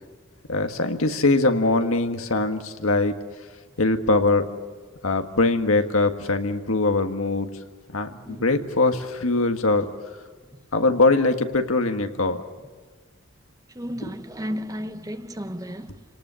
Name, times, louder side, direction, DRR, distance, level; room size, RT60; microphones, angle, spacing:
voice 1, 0.5-3.2 3.8-4.5 5.0-7.5 7.9-9.9 10.7-12.4, left 2 dB, 85° left, 1.7 m, -22 dB
voice 2, 13.7-16.0, equal, 15° right, 0.9 m, -33 dB
29.5 x 19.0 x 7.0 m
head